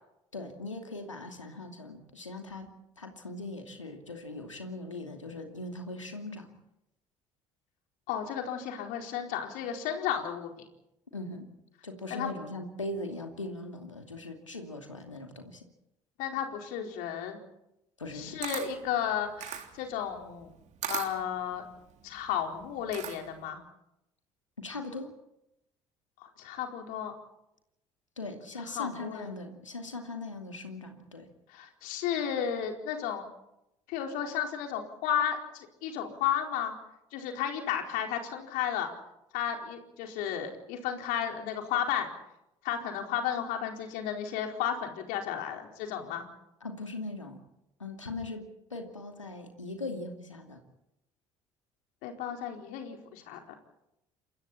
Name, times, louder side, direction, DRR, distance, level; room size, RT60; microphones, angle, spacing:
voice 1, 0.3-2.7 3.0-6.5 11.1-11.5 11.8-15.7 18.0-18.4 24.6-25.1 28.2-31.3 46.6-47.4 47.8-50.6, left 2 dB, 90° left, 4 dB, 2.7 m, -40 dB
voice 2, 8.1-10.6 12.1-12.3 16.2-17.4 18.1-20.5 20.9-21.6 22.0-23.6 26.2-27.1 28.8-29.3 31.5-33.2 33.9-36.7 37.1-38.9 39.3-42.1 42.6-46.3 52.0-53.4, left 9 dB, 65° left, 3 dB, 4.5 m, -33 dB
Camera, 18.0-23.5, right 9 dB, 50° right, 3.3 m, -40 dB
29.0 x 27.0 x 4.3 m, 0.85 s
figure-of-eight pair, 55°, 16 cm